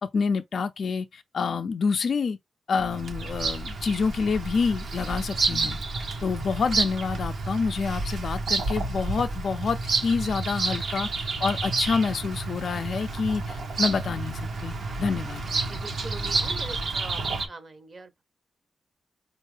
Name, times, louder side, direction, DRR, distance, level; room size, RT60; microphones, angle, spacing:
voice 1, 0.0-2.4 2.7-5.8 6.2-15.4, left 5 dB, 60° left, 0.3 m, -27 dB
Bird vocalization bird call bird song, 2.8-17.5, right 3 dB, 70° right, 0.8 m, -30 dB
voice 2, 15.6-17.2 17.5-18.2, right 3 dB, 40° right, 0.7 m, -42 dB
4.3 x 2.4 x 3.2 m
wide cardioid pair, 100°, 0 cm